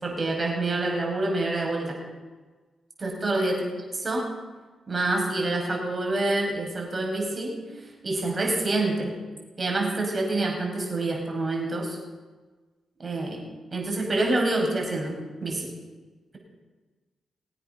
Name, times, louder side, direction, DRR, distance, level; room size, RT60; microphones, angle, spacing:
voice 1, 0.0-2.0 3.0-3.7 4.0-4.3 4.9-7.6 8.0-9.1 9.6-12.0 13.0-13.4 13.7-15.1 15.4-15.7, right 2 dB, 35° right, 0 dB, 5.5 m, -27 dB
21.0 x 8.9 x 5.8 m, 1.3 s
cardioid pair, 70°, 0 cm